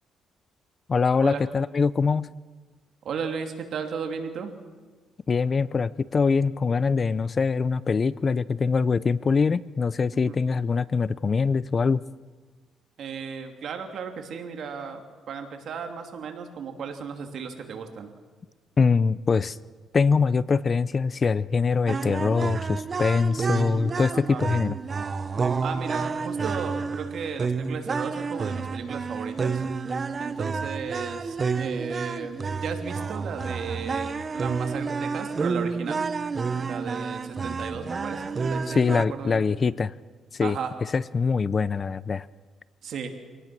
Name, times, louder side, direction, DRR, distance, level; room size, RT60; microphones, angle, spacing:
voice 1, 0.9-2.3 5.3-12.0 18.8-19.6 19.9-24.8 38.7-39.9 40.3-40.6 40.9-42.3, left 5 dB, 40° left, 19 dB, 0.5 m, -23 dB
voice 2, 3.0-4.5 10.1-10.4 13.0-18.1 24.1-24.4 25.6-29.6 30.2-36.0 36.6-39.4 40.4-40.7 42.8-43.1, right 6 dB, 65° right, 5 dB, 2.7 m, -35 dB
sound 1, 21.9-39.1, right 4 dB, 35° right, 0.9 m, -30 dB
26.0 x 18.0 x 6.1 m, 1.4 s
cardioid pair, 90°, 0 cm